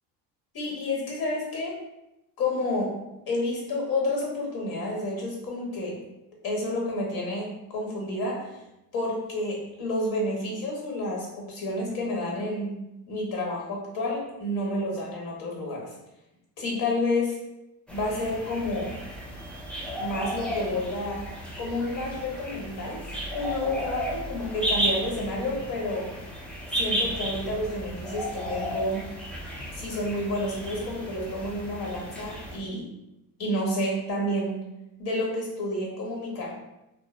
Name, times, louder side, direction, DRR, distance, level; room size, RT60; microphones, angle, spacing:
voice 1, 0.5-1.8 2.4-3.0 3.3-6.0 6.4-8.5 8.9-12.8 13.1-15.9 16.6-17.4 17.9-18.9 20.0-21.3 21.6-23.0 23.3-26.1 26.7-29.1 29.7-32.8 33.4-34.7 35.0-36.5, left 1 dB, 55° left, -2 dB, 1.1 m, -30 dB
sound 1, 17.9-32.6, right 1 dB, 5° left, 0.4 m, -34 dB
3.0 x 2.0 x 2.2 m, 0.92 s
supercardioid pair, 85°, 43 cm